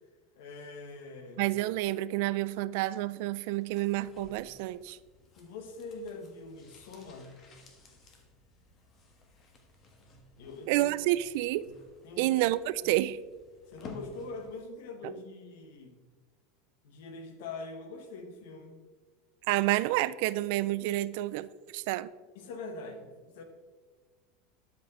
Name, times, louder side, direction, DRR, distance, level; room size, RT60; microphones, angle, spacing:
voice 1, 0.4-1.4 5.4-7.4 10.4-10.9 12.0-12.5 12.8-13.1 13.7-16.0 16.8-18.8 22.3-23.4, left 3 dB, 75° left, 6 dB, 1.3 m, -43 dB
voice 2, 1.4-5.0 10.7-11.6 12.2-13.2 15.0-15.1 19.5-22.1, right 16 dB, 70° right, 17 dB, 0.3 m, -29 dB
sound 1, 3.5-14.7 15.0-15.1, left 2 dB, 40° left, 1.5 m, -55 dB
11.5 x 5.4 x 3.7 m, 1.4 s
supercardioid pair, 115°, 0 cm